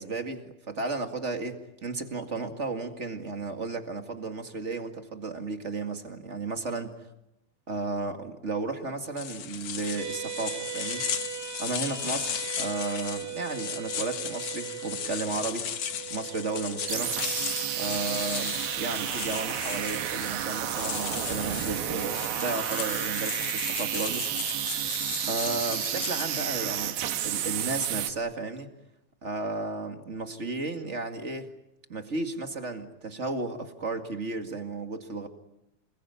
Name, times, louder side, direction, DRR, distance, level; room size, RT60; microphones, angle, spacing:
voice 1, 0.0-6.9 7.7-11.0 11.6-15.7 16.1-17.1 17.8-24.2 25.3-28.7 29.2-31.5 31.9-35.3, right 3 dB, 25° right, 7 dB, 1.6 m, -34 dB
sound 1, 9.2-26.6, left 8 dB, 55° left, 1.9 m, -36 dB
sound 2, 10.0-22.6, right 10 dB, 60° right, 2.5 m, -41 dB
sound 3, 16.8-28.1, right 11 dB, 90° right, 3.4 m, -31 dB
28.5 x 21.5 x 9.6 m, 0.84 s
omnidirectional pair, 4.2 m